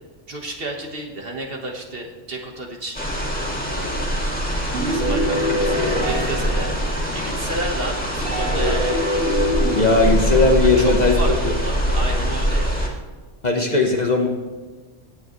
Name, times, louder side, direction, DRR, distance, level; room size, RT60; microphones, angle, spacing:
voice 1, 0.3-3.0 3.7-4.2 4.8-6.7 7.1-9.0 10.8-12.9, right 1 dB, 50° right, 2 dB, 1.6 m, -31 dB
sound 1, 2.9-12.9, equal, 5° left, 2.0 m, -23 dB
sound 2, 4.7-7.6 8.2-11.1, left 1 dB, 85° right, 2.2 m, -25 dB
voice 2, 9.7-11.5 13.4-14.3, left 3 dB, 35° left, 2 dB, 1.3 m, -18 dB
16.5 x 9.2 x 3.2 m, 1.3 s
omnidirectional pair, 1.3 m